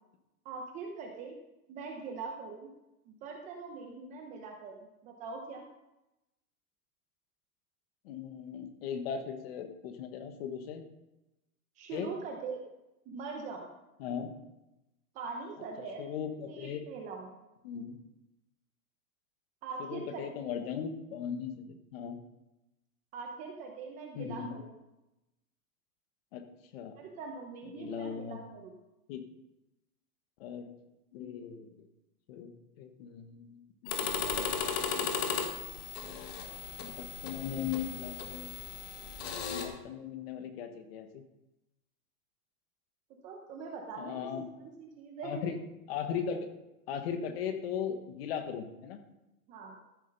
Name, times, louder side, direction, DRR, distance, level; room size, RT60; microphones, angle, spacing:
voice 1, 0.4-1.4 1.7-2.7 3.1-5.7 11.8-12.6 13.1-13.7 15.1-16.0 16.5-17.4 19.6-20.5 23.1-24.7 26.9-28.8 34.1-35.2 43.2-44.3 44.6-45.4 49.5-49.8, right 4 dB, 15° right, 2 dB, 0.7 m, -42 dB
voice 2, 8.0-10.8 11.9-12.1 14.0-14.3 16.0-16.8 17.6-18.0 19.8-22.2 24.2-24.6 26.3-26.5 26.7-26.9 27.8-28.4 29.1-29.2 30.4-30.8 31.1-31.9 32.3-34.2 34.9-35.3 36.8-38.5 39.5-41.2 44.0-44.5 45.2-45.6 45.9-46.5 46.9-49.0, left 7 dB, 40° left, 7 dB, 1.4 m, -38 dB
sound 1, 33.9-39.7, left 7 dB, 25° left, 1.2 m, -36 dB
14.0 x 7.3 x 5.4 m, 0.94 s
supercardioid pair, 170°, 44 cm